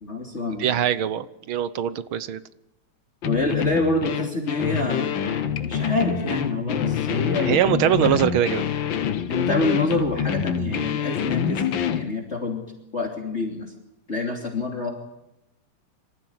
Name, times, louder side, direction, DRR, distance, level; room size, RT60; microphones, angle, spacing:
voice 1, 0.0-0.8 3.2-8.2 9.3-12.6 12.9-13.7 14.1-14.9, left 2 dB, 30° left, 1 dB, 3.2 m, -27 dB
voice 2, 0.6-2.4 7.4-8.6, right 10 dB, 75° right, 15 dB, 1.8 m, -22 dB
sound 1, 3.2-12.1, left 8 dB, 70° left, 1.9 m, -26 dB
25.5 x 14.5 x 9.5 m, 0.90 s
omnidirectional pair, 2.3 m